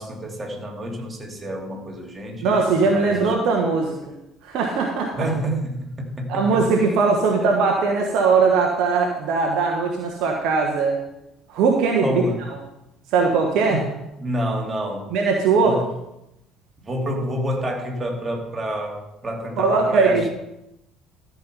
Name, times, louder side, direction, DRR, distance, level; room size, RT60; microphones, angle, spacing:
voice 1, 0.0-3.3 5.1-5.7 6.2-6.6 12.0-12.4 13.7-13.8 14.2-15.1 15.6-15.8 16.8-20.3, equal, 20° right, 0 dB, 2.6 m, -28 dB
voice 2, 2.4-3.9 4.4-5.3 6.3-11.0 11.5-12.2 13.1-13.8 15.1-15.8 19.6-20.3, right 4 dB, 55° right, 1 dB, 1.3 m, -20 dB
13.0 x 6.3 x 5.6 m, 0.87 s
figure-of-eight pair, 55°, 0 cm